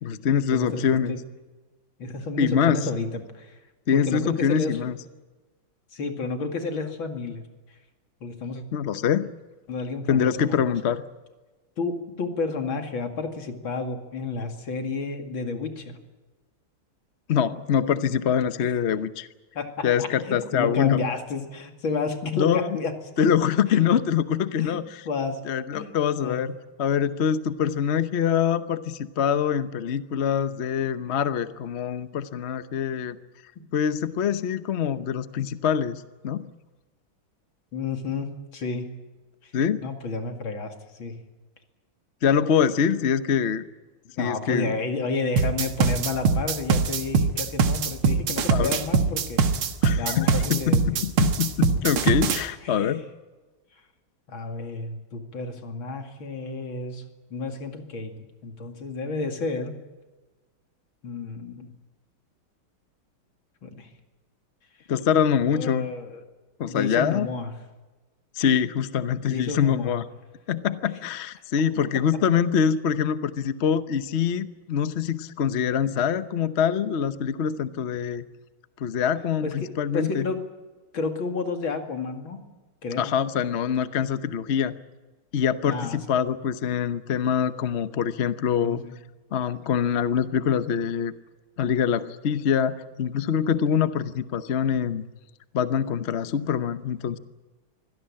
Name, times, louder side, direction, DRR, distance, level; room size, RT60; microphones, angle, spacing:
voice 1, 0.0-1.2 2.4-2.8 3.9-5.0 8.7-9.3 10.1-11.0 17.3-19.3 19.8-21.0 22.3-22.8 23.2-24.8 25.4-33.2 33.7-36.5 39.5-39.9 42.2-43.6 44.2-44.7 48.5-48.7 49.8-53.0 64.9-65.9 66.6-67.3 68.3-70.0 70.5-78.2 78.8-80.3 83.0-84.7 85.3-88.8 89.3-91.1 91.6-95.0 95.5-97.2, left 8 dB, 50° left, 12 dB, 0.8 m, -24 dB
voice 2, 0.5-0.8 1.1-1.2 2.0-3.6 3.9-4.9 5.9-7.4 8.2-8.6 9.7-10.7 11.8-16.0 19.5-23.3 23.7-23.8 24.6-24.8 25.0-25.4 25.7-25.9 26.2-26.4 33.6-33.7 37.7-38.9 39.4-39.5 39.8-41.2 44.2-49.4 50.0-51.0 52.6-52.9 54.3-57.0 57.3-59.8 61.0-61.7 63.6-63.9 65.5-66.2 66.6-67.5 69.3-70.0 79.4-80.4 80.9-82.4 82.8-83.1 85.6-86.4 88.6-89.0, left 3 dB, 70° left, 6 dB, 3.1 m, -31 dB
sound 1, 45.4-52.4, right 5 dB, 85° right, 2.3 m, -22 dB
24.5 x 17.0 x 8.7 m, 1.2 s
omnidirectional pair, 2.3 m